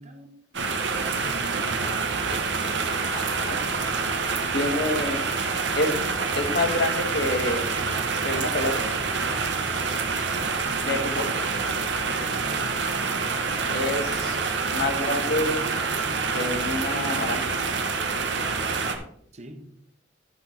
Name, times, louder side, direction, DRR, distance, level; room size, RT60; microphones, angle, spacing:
voice 1, 0.0-1.7 10.7-11.1 11.9-12.6 19.3-19.6, right 1 dB, 35° right, 5 dB, 1.2 m, -45 dB
sound 1, 0.5-19.0, right 4 dB, 70° right, 1.2 m, -27 dB
voice 2, 2.5-2.8 3.1-4.1 4.5-5.2 5.8-6.0 6.3-7.7 8.2-8.9 10.8-11.3 12.0-12.1 13.7-15.6 16.3-17.6, left 2 dB, 60° left, 5 dB, 1.5 m, -28 dB
11.0 x 6.1 x 4.4 m, 0.69 s
head